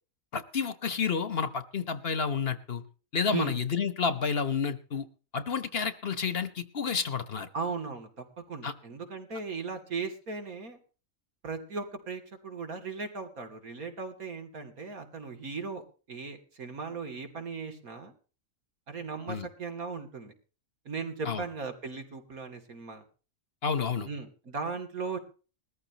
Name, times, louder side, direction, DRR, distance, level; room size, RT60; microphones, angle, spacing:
voice 1, 0.3-2.8 3.1-5.1 5.3-7.5 8.6-8.7 19.3-19.5 21.2-21.4 23.6-24.1, left 6 dB, 50° left, 13 dB, 1.2 m, -30 dB
voice 2, 7.5-10.8 11.4-15.8 16.1-18.1 18.9-20.3 20.8-23.0 24.0-25.2, right 4 dB, 85° right, 5 dB, 3.1 m, -37 dB
20.5 x 14.0 x 2.9 m, 0.36 s
omnidirectional pair, 1.5 m